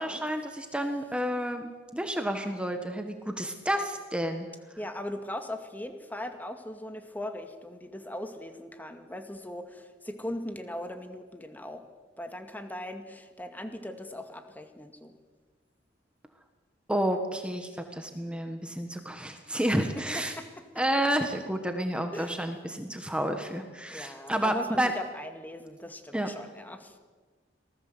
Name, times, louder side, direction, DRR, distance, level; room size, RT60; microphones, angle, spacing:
voice 1, 0.0-4.5 16.9-20.3 20.8-24.9 26.1-26.3, right 1 dB, 5° right, 5 dB, 1.5 m, -30 dB
voice 2, 4.8-11.8 12.2-15.1 20.0-20.6 22.1-22.4 23.9-27.0, left 1 dB, 10° left, 7 dB, 2.1 m, -39 dB
26.0 x 19.0 x 8.0 m, 1.4 s
head